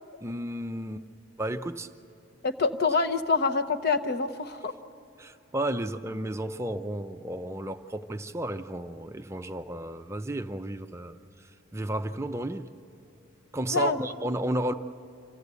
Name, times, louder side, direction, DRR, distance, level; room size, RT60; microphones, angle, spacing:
voice 1, 0.2-1.1 1.4-1.9 5.2-11.2 11.7-12.7 13.5-14.7, right 1 dB, 15° right, 8 dB, 0.5 m, -32 dB
voice 2, 2.4-4.7 13.7-14.1, left 4 dB, 55° left, 8 dB, 0.9 m, -26 dB
27.0 x 15.0 x 8.2 m, 2.7 s
head